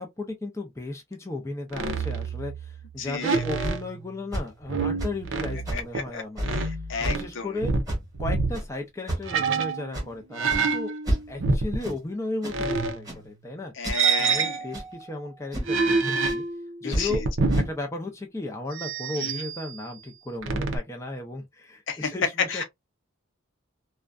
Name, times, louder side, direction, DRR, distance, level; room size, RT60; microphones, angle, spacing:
voice 1, 0.0-6.5 7.0-7.7 8.2-16.4 16.8-17.2 17.5-22.6, left 2 dB, 15° left, 0.5 m, -35 dB
sound 1, 1.7-2.9 3.2-4.2 4.6-6.1 6.4-7.3 7.6-8.6 9.3-10.1 10.3-11.9 12.5-13.5 13.9-15.1 15.6-17.7 18.7-19.8 20.4-20.8, right 4 dB, 65° right, 0.5 m, -27 dB
voice 2, 3.0-3.4 5.7-5.8 6.1-6.2 6.5-7.5 13.8-14.6 16.8-17.2 19.2-19.4 21.9-22.1 22.5-22.6, left 5 dB, 60° left, 0.7 m, -32 dB
sound 2, 3.6-3.8 4.3-4.5 5.0-5.3 5.7-5.9 6.4-6.5 7.0-7.2 7.9-8.2 8.5-8.7 9.1-9.4 9.9-10.1 10.5-10.7 11.0-11.5 11.8-12.0 12.4-12.6 13.0-13.2 13.8-14.0 14.7-15.0 15.5-15.8 16.2-16.4 16.9-17.1 17.5-17.7, right 1 dB, 20° right, 1.1 m, -31 dB
2.4 x 2.2 x 2.3 m
head